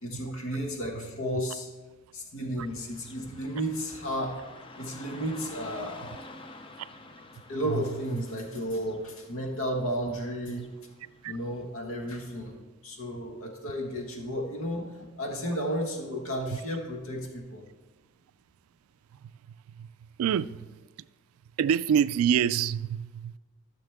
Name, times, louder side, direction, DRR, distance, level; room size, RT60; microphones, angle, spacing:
voice 1, 0.0-1.7 2.1-4.4 4.8-6.0 7.5-10.7 11.2-12.6 12.8-17.6, equal, 80° left, 1.5 m, -33 dB
Car passing by / Traffic noise roadway noise, 2.6-11.6, left 2 dB, 25° left, 0.5 m, -49 dB
voice 2, 20.2-20.7 21.6-23.4, right 8 dB, 85° right, 0.3 m, -26 dB
13.5 x 6.4 x 3.5 m
head